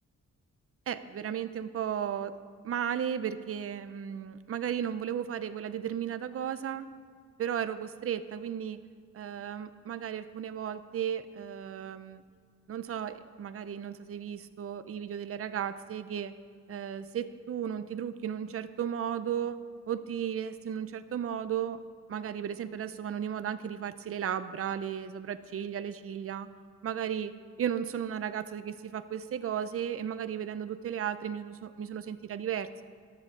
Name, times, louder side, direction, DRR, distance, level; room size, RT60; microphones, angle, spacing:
voice 1, 0.9-2.4 2.6-6.9 7.4-8.8 9.1-12.2 12.7-16.3 16.7-19.6 19.9-21.8 22.1-26.5 26.8-32.8, right 9 dB, 50° right, 12 dB, 0.5 m, -35 dB
14.0 x 11.5 x 3.7 m, 2.2 s
wide cardioid pair, 160°, 30 cm